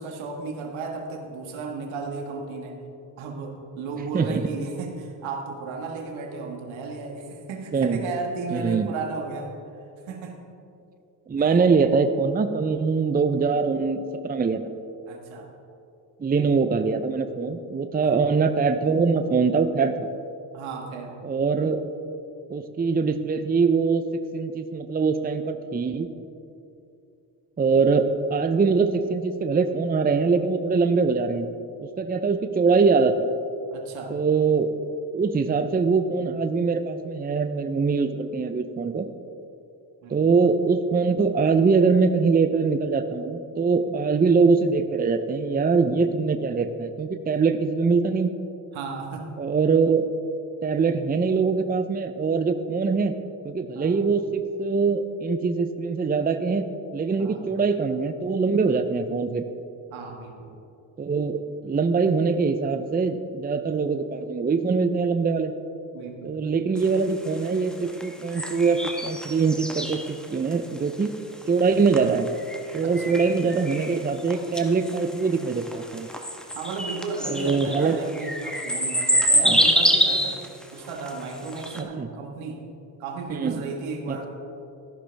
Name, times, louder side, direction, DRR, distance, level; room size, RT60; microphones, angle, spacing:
voice 1, 0.0-2.8 3.2-9.5 10.1-10.4 11.4-11.5 15.1-15.5 17.8-18.3 20.5-21.1 33.7-34.2 40.0-40.2 48.7-49.3 53.8-54.0 57.2-57.5 59.9-60.6 65.9-66.4 72.8-73.2 76.5-80.4 80.7-82.6 83.0-84.3, right 4 dB, 75° right, 2 dB, 1.7 m, -34 dB
voice 2, 4.1-4.5 7.7-8.0 8.5-8.9 11.3-14.6 16.2-20.1 21.2-21.9 22.5-24.0 24.3-26.1 27.6-31.5 31.8-33.3 34.1-34.7 35.1-39.1 40.1-48.3 49.4-50.1 50.6-53.1 53.4-56.7 56.9-59.5 61.0-65.5 66.2-71.1 71.5-72.3 72.7-76.1 77.2-78.0 79.4-79.6 81.8-82.1 83.3-83.6 84.1-84.2, right 4 dB, 20° right, 9 dB, 0.6 m, -23 dB
sound 1, 66.8-81.8, equal, ahead, 1.3 m, -26 dB
13.5 x 11.0 x 3.5 m, 2.7 s
supercardioid pair, 60°, 48 cm